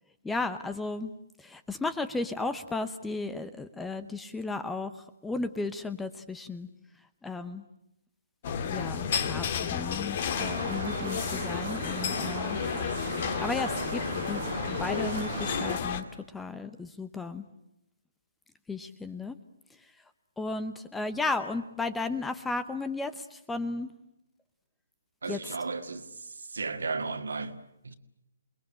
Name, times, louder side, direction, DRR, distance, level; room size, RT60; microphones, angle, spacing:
voice 1, 0.2-1.1 1.4-4.9 5.2-6.7 7.2-7.6 8.7-12.6 13.4-16.0 16.3-17.4 18.7-19.4 20.4-23.9 25.3-25.6, left 3 dB, 5° left, 1.0 m, -34 dB
sound 1, 8.4-16.0, left 7 dB, 40° left, 1.9 m, -32 dB
sound 2, 10.4-15.8, right 7 dB, 55° right, 1.2 m, -38 dB
voice 2, 25.2-26.1 26.5-27.9, right 4 dB, 70° right, 2.1 m, -34 dB
28.0 x 21.0 x 8.9 m
figure-of-eight pair, 140°, 0 cm